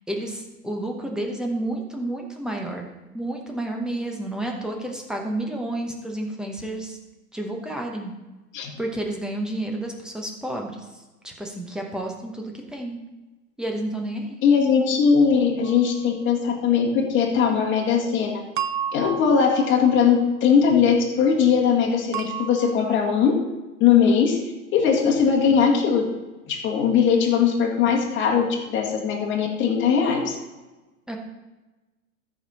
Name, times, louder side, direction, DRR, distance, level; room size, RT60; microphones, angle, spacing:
voice 1, 0.1-2.9 3.1-7.0 7.3-8.1 8.8-13.0 13.6-14.4 31.1-31.2, right 1 dB, ahead, 1 dB, 0.9 m, -30 dB
voice 2, 14.4-18.4 18.9-23.3 23.8-24.4 24.7-26.0 26.5-30.3, left 6 dB, 25° left, -2 dB, 1.9 m, -20 dB
sound 1, 15.6-16.1 18.6-20.2 22.1-23.3, right 9 dB, 35° right, 0.4 m, -33 dB
13.5 x 5.4 x 4.2 m, 1.1 s
hypercardioid pair, 130°, 47 cm